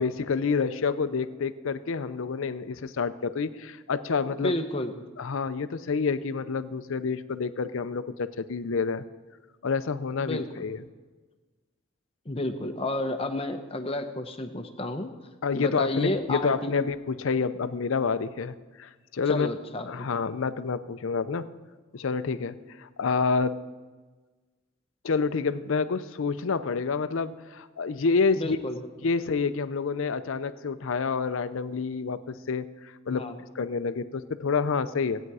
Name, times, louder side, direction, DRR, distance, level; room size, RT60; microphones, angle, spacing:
voice 1, 0.0-4.6 5.2-9.0 9.6-10.8 15.4-19.5 19.9-21.5 21.9-23.6 25.0-28.6 29.0-33.2 33.5-35.2, left 5 dB, 70° left, 13 dB, 0.5 m, -28 dB
voice 2, 4.4-5.0 10.2-10.7 12.3-15.1 15.5-16.7 19.3-20.1 28.3-28.9 33.1-33.4, left 1 dB, 25° left, 7 dB, 0.7 m, -31 dB
15.5 x 8.9 x 4.8 m, 1.3 s
head